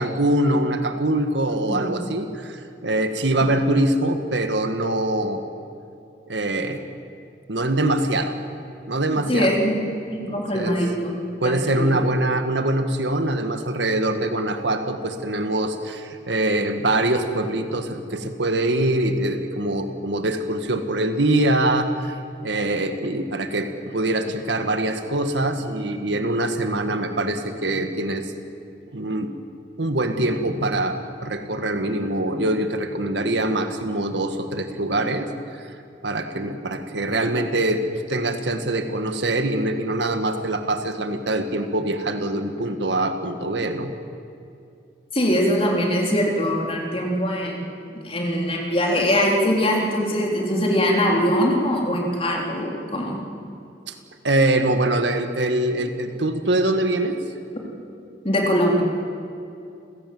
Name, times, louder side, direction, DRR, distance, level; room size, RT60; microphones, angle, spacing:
voice 1, 0.0-5.4 6.3-6.8 7.5-8.4 8.9-9.5 10.3-10.8 11.4-22.2 22.4-28.3 28.9-29.3 29.8-35.8 36.0-37.8 38.1-43.9 53.9-54.0 54.2-57.2, right 1 dB, 80° right, 7 dB, 1.8 m, -23 dB
voice 2, 9.3-9.8 10.1-11.1 11.4-12.0 45.1-47.6 48.0-53.2 58.2-58.8, equal, 30° left, -1 dB, 3.9 m, -22 dB
29.5 x 16.5 x 7.9 m, 2.6 s
head